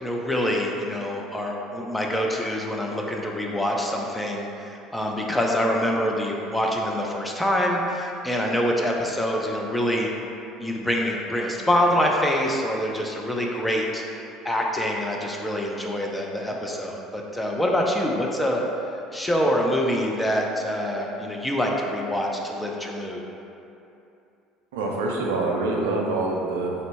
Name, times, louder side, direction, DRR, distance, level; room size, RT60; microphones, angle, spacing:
voice 1, 0.0-10.1 10.6-14.0 14.4-18.6 19.1-23.2, equal, 10° left, -1 dB, 0.5 m, -25 dB
voice 2, 24.7-26.7, right 2 dB, 75° right, -1 dB, 0.4 m, -25 dB
3.8 x 2.1 x 3.4 m, 2.8 s
hypercardioid pair, 65°, 0 cm